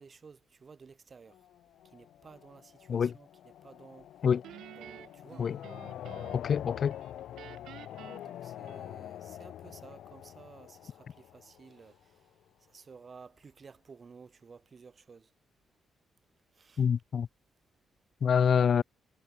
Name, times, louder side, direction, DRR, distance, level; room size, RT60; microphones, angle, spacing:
voice 1, 0.0-1.5 1.8-4.4 4.7-5.5 8.2-15.3 16.5-16.9, right 5 dB, 30° right, 2.1 m, -54 dB
sound 1, 1.3-12.1, left 11 dB, 80° left, 0.9 m, -46 dB
Guitar, 4.4-6.6 6.9-9.2, right 12 dB, 90° right, 0.8 m, -51 dB
Acoustic guitar / Strum, 5.2-8.2, right 9 dB, 60° right, 5.4 m, -62 dB
voice 2, 6.3-7.0 16.8-17.3 18.2-18.8, left 7 dB, 45° left, 0.3 m, -26 dB
cardioid pair, 160°, 0 cm